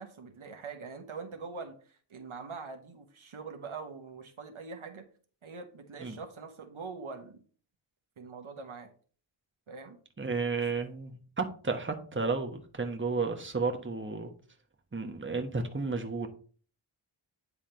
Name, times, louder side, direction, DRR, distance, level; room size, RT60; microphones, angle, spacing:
voice 1, 0.0-5.1 5.4-7.4 8.2-8.9 9.7-10.0, right 4 dB, 75° right, 5 dB, 1.2 m, -43 dB
voice 2, 10.2-14.3 14.9-16.3, right 4 dB, 25° right, 4 dB, 1.1 m, -32 dB
9.6 x 3.6 x 4.4 m, 0.42 s
wide cardioid pair, 60°, 49 cm